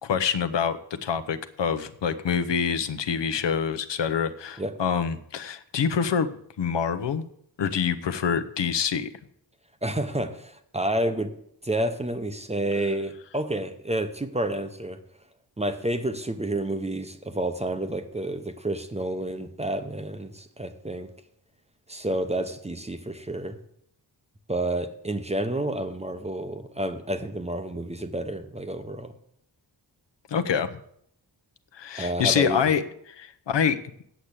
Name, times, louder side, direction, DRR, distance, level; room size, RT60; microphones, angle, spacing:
voice 1, 0.0-6.3 6.6-7.3 7.6-9.1 30.3-30.8 31.7-33.8, left 7 dB, 75° left, 11 dB, 0.9 m, -26 dB
voice 2, 9.8-11.3 11.6-15.0 15.6-21.1 21.9-23.6 24.5-29.1 32.0-32.7, right 1 dB, 15° right, 8 dB, 0.7 m, -29 dB
8.2 x 7.5 x 8.3 m, 0.70 s
wide cardioid pair, 170°, 43 cm